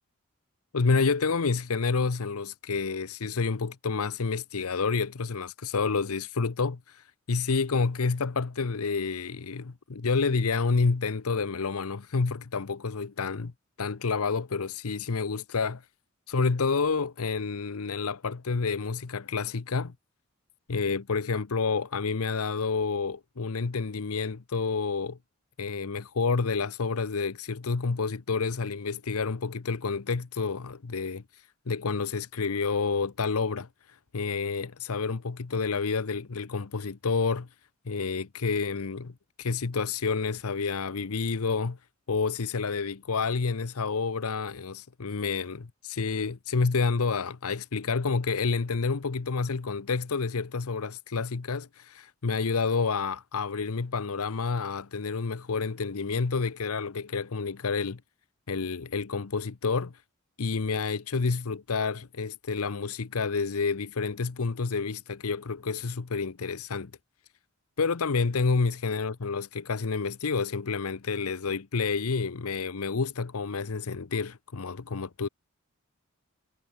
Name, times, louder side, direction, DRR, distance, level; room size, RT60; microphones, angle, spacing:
voice 1, 0.7-13.5 13.8-15.8 16.3-19.9 20.7-25.2 25.6-31.2 31.7-33.7 34.1-37.5 37.9-41.8 42.1-58.0 58.5-60.0 60.4-66.9 67.8-75.3, left 4 dB, 80° left, 0.8 m, -29 dB
head